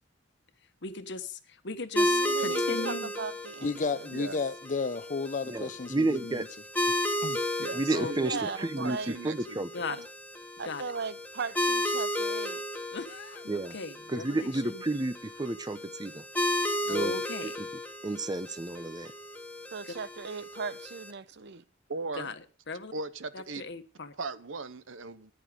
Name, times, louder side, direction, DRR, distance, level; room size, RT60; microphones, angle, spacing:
voice 1, 0.8-3.1 7.9-8.1 9.7-10.0 10.6-10.8 12.9-14.8 16.9-17.6 19.8-19.9 22.2-22.4 22.7-22.9 23.3-24.1, left 3 dB, 65° left, 1.4 m, -38 dB
sound 1, 2.0-21.1, left 1 dB, 10° left, 1.5 m, -34 dB
voice 2, 2.1-3.8 8.2-9.1 9.9-10.0 10.6-12.6 19.7-21.6, right 5 dB, 60° right, 0.8 m, -38 dB
voice 3, 3.6-6.5 6.9-7.0 7.2-7.7 8.0-8.1, left 4 dB, 40° left, 0.7 m, -33 dB
voice 4, 5.5-6.4 7.7-9.7 13.5-13.7 14.1-16.2 16.9-17.1 17.4-17.7 18.0-19.1, right 2 dB, 20° right, 0.7 m, -31 dB
voice 5, 7.6-8.4 8.8-9.7 21.9-22.3 22.9-23.7 24.2-25.3, right 3 dB, 85° right, 1.0 m, -38 dB
14.0 x 10.5 x 5.2 m
head